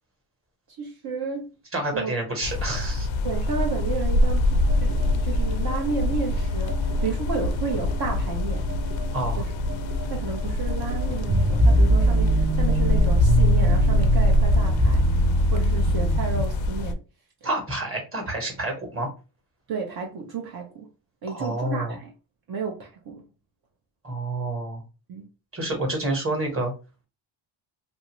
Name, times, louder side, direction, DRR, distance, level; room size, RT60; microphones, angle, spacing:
voice 1, 0.7-1.5 1.9-2.1 3.2-8.7 9.4-9.5 10.1-17.0 17.4-17.5 19.7-20.9 21.2-22.1 22.5-23.2 25.1-25.3, right 5 dB, 50° right, 0.8 m, -32 dB
voice 2, 1.7-3.1 9.1-9.4 17.4-19.1 21.3-22.0 24.0-24.8 25.5-26.7, right 2 dB, 25° right, 1.2 m, -28 dB
sound 1, 2.4-16.9, left 1 dB, 70° left, 0.6 m, -25 dB
sound 2, 4.6-14.0, right 1 dB, 75° right, 1.3 m, -39 dB
sound 3, 11.2-16.4, right 1 dB, 5° right, 0.3 m, -21 dB
2.6 x 2.5 x 2.9 m
cardioid pair, 125°, 49 cm